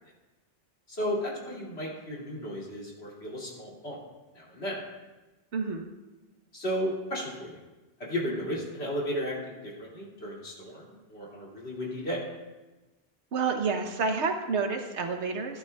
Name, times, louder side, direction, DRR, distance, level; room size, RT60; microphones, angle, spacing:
voice 1, 0.9-4.0 4.3-4.8 6.5-7.6 8.0-12.2, equal, 70° left, -4 dB, 2.9 m, -34 dB
voice 2, 5.5-5.8 13.3-15.6, right 4 dB, 90° right, 5 dB, 1.3 m, -29 dB
14.5 x 11.5 x 2.3 m, 1.1 s
omnidirectional pair, 1.1 m